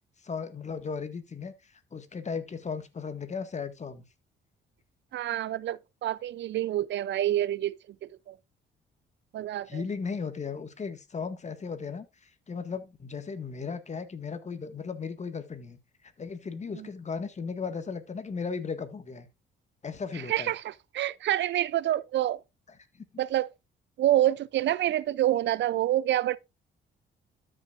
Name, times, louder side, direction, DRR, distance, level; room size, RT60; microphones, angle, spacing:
voice 1, 0.2-4.1 9.7-15.8 16.2-19.3 19.8-20.5 22.9-23.1, left 5 dB, 35° left, 1.8 m, -36 dB
voice 2, 5.1-7.8 8.0-8.4 9.3-9.8 16.7-16.9 20.3-22.4 23.2-23.5 24.0-26.4, right 13 dB, 65° right, 0.5 m, -27 dB
13.0 x 6.4 x 2.5 m
cardioid pair, 90°, 20 cm